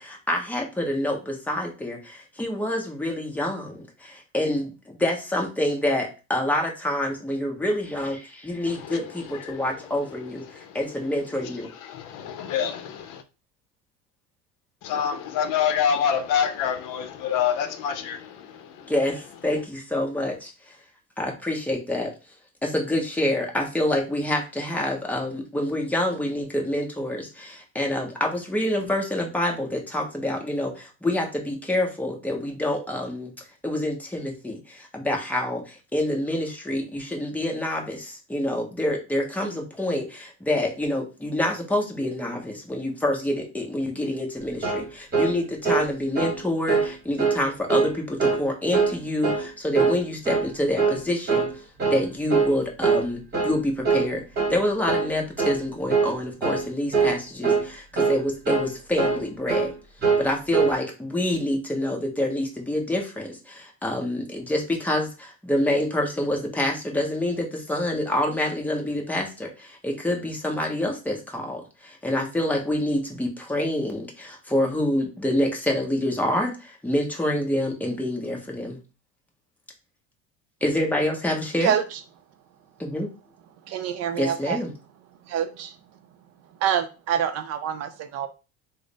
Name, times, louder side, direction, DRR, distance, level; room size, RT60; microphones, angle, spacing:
voice 1, 0.0-4.7 5.0-10.4 10.7-11.7 18.9-20.8 21.2-22.1 22.6-33.3 33.6-51.5 51.8-54.2 54.5-59.7 60.2-78.8 80.6-81.7 82.8-83.1 84.2-84.7, left 1 dB, 5° left, 0.7 m, -27 dB
voice 2, 8.7-9.8 10.5-10.8 11.4-13.2 14.8-18.9, left 8 dB, 65° left, 0.6 m, -27 dB
sound 1, 44.6-44.9 45.1-45.3 45.6-45.9 46.2-46.4 46.7-46.9 47.2-47.4 47.7-47.9 48.2-48.4 48.7-49.0 49.2-49.5 49.7-50.0 50.3-50.5 50.8-51.0 51.3-51.5 51.8-52.0 52.3-52.5 52.8-53.1 53.3-53.6 53.8-54.1 54.4-54.6 54.9-55.1 55.4-55.6 55.9-56.1 56.4-56.7 56.9-57.2 57.4-57.7 58.0-58.2 58.5-58.7 59.0-59.2 59.5-59.7 60.0-60.3 60.5-60.8, right 5 dB, 30° right, 1.2 m, -22 dB
voice 3, 81.6-82.0 83.6-84.6 85.2-85.8 86.5-88.3, right 9 dB, 50° right, 0.5 m, -26 dB
3.1 x 2.0 x 3.9 m
supercardioid pair, 125°, 34 cm